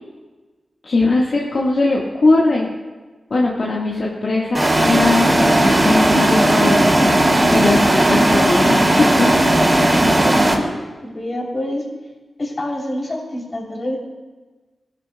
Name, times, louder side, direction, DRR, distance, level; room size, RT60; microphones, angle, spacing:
voice 1, 0.8-2.7 3.3-7.1 7.5-8.9 9.2-9.3 9.8-10.1, left 2 dB, 65° left, -4 dB, 1.6 m, -19 dB
sound 1, 4.5-10.5, right 1 dB, 25° right, 2.6 m, -15 dB
voice 2, 10.1-10.8 11.0-11.8 12.4-14.0, left 1 dB, 50° left, -1 dB, 3.3 m, -27 dB
17.5 x 11.0 x 2.3 m, 1.3 s
cardioid pair, 55°, 0 cm